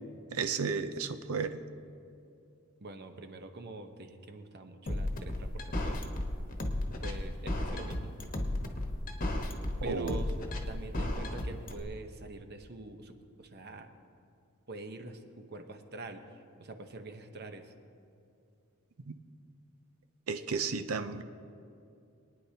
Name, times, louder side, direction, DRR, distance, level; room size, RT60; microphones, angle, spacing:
voice 1, 0.3-1.6 9.8-10.2 19.1-19.2 20.3-21.2, right 5 dB, 80° right, 9 dB, 0.6 m, -33 dB
voice 2, 2.8-6.0 7.0-8.1 9.8-10.4 10.7-13.9 14.7-16.2 16.6-17.7, right 2 dB, 50° right, 6 dB, 0.9 m, -45 dB
sound 1, 4.9-11.8, left 1 dB, 40° left, 1.1 m, -33 dB
24.0 x 9.6 x 2.8 m, 2.6 s
head